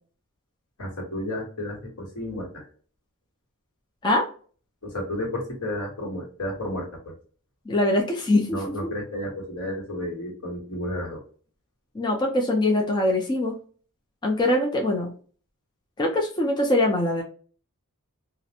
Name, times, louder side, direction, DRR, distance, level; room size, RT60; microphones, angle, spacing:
voice 1, 0.8-2.7 4.8-7.1 8.5-11.2, left 1 dB, 80° left, -1 dB, 1.2 m, -32 dB
voice 2, 7.7-8.6 11.9-13.6 14.2-15.1 16.0-17.2, left 1 dB, 20° left, 0 dB, 0.4 m, -22 dB
2.4 x 2.0 x 2.8 m, 0.42 s
head